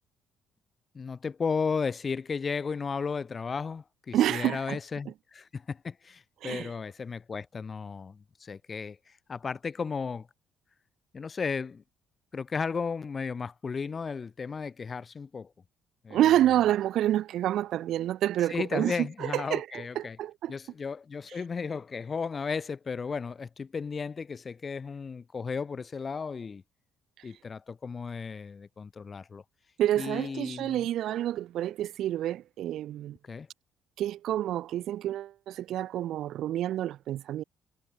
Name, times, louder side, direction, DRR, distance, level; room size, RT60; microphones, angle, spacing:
voice 1, 0.9-9.0 9.3-10.3 11.1-11.8 12.3-15.5 16.0-16.2 18.5-20.2 20.5-26.6 27.2-29.4 30.0-30.9 33.2-33.5, left 5 dB, 40° left, 1.2 m, -34 dB
voice 2, 4.1-4.8 6.4-6.7 16.1-20.5 29.8-33.2 34.0-37.4, right 12 dB, 70° right, 0.5 m, -28 dB
hypercardioid pair, 60°, 0 cm